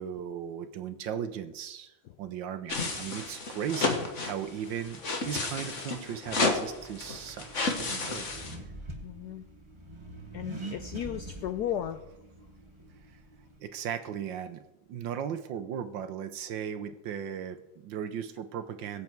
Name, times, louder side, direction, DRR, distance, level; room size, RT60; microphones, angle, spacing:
voice 1, 0.0-8.4 13.6-14.6 14.9-19.0, right 8 dB, 65° right, 10 dB, 1.3 m, -37 dB
sound 1, 2.7-8.5, left 3 dB, 35° left, 1.6 m, -32 dB
Accelerating revving vroom, 6.2-13.6, right 2 dB, 15° right, 1.1 m, -45 dB
voice 2, 9.0-9.4 10.3-12.0, left 10 dB, 80° left, 10 dB, 0.9 m, -34 dB
22.0 x 8.1 x 4.6 m, 0.95 s
omnidirectional pair, 2.4 m